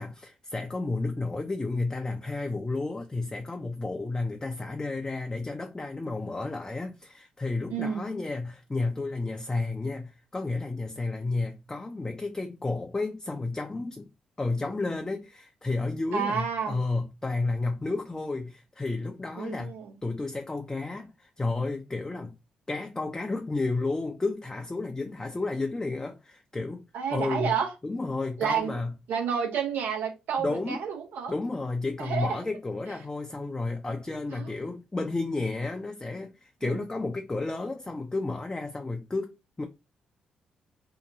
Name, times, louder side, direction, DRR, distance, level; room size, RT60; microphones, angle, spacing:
voice 1, 0.0-14.1 14.4-19.7 20.0-22.3 22.7-26.8 27.1-27.5 27.8-28.9 30.4-30.8 31.3-39.6, left 3 dB, 20° left, 0.5 m, -32 dB
voice 2, 7.7-8.1 16.1-16.8 19.4-19.9 26.9-27.7 28.4-28.8 29.1-31.3 32.0-32.4 34.3-34.5 36.6-36.8, right 7 dB, 70° right, 0.8 m, -30 dB
2.7 x 2.2 x 2.6 m
hypercardioid pair, 40°, 3 cm